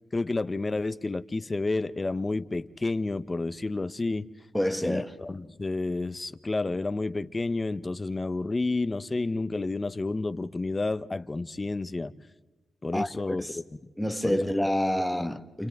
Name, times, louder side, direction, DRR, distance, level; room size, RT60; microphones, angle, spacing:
voice 1, 0.1-4.3 4.8-12.1 12.8-13.4 14.2-14.4, left 3 dB, 25° left, 0.8 m, -30 dB
voice 2, 4.5-5.2 12.9-13.6 14.0-15.7, equal, 5° left, 1.3 m, -28 dB
30.0 x 29.5 x 3.6 m
cardioid pair, 100°, 0 cm